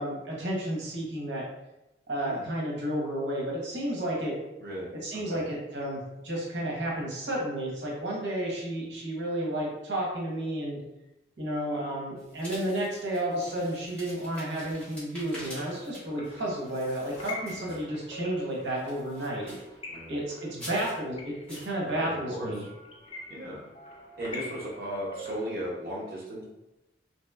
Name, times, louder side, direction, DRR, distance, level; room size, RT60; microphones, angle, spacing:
voice 1, 0.0-1.4 2.1-4.3 5.0-10.8 11.4-19.6 20.1-22.7, right 1 dB, 85° right, -3 dB, 0.8 m, -32 dB
voice 2, 5.1-5.4 17.5-17.8 19.9-20.2 21.8-22.7 23.3-23.6 24.2-26.4, equal, 55° right, -6 dB, 0.6 m, -36 dB
sound 1, 12.2-18.1 18.5-19.8 20.5-21.0 21.5-21.7, left 1 dB, 10° left, 1.0 m, -47 dB
sound 2, 15.9-25.7, left 2 dB, 30° left, 0.4 m, -45 dB
2.9 x 2.8 x 2.2 m, 0.93 s
head